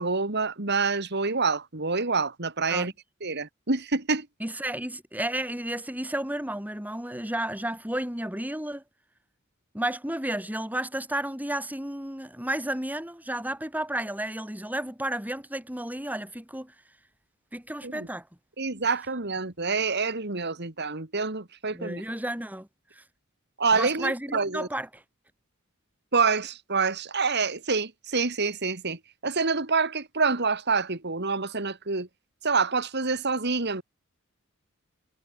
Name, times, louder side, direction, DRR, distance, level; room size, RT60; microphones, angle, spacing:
voice 1, 0.0-2.9 3.2-4.3 17.8-18.1 18.6-22.0 23.6-24.7 26.1-32.1 32.4-33.8, right 4 dB, 50° right, 2.5 m, -27 dB
voice 2, 4.4-8.8 9.7-16.7 17.5-18.3 21.7-23.0 23.7-25.0, right 1 dB, 10° right, 5.0 m, -32 dB
head